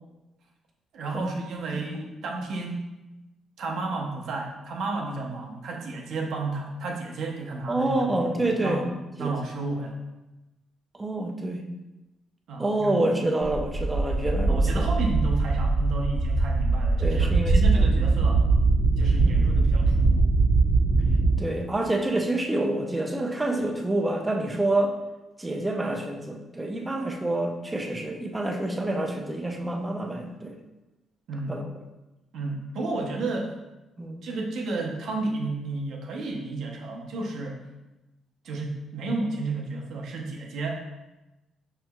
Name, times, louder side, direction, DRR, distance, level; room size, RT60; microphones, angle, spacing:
voice 1, 0.9-2.8 3.6-8.8 9.2-10.0 12.5-13.0 14.5-18.5 19.0-20.3 31.3-31.6 32.3-33.5 34.2-37.6 38.4-40.8, right 2 dB, 70° right, 0 dB, 0.7 m, -32 dB
voice 2, 7.7-8.9 9.2-9.4 10.9-11.7 12.6-14.8 17.0-17.8 19.2-19.4 21.4-25.0 25.4-30.6 31.5-31.6 34.0-34.3, right 1 dB, 15° right, 3 dB, 0.5 m, -27 dB
sound 1, 13.4-21.4, right 3 dB, 40° right, 1.0 m, -22 dB
5.4 x 2.9 x 2.2 m, 1.0 s
cardioid pair, 90°, 0 cm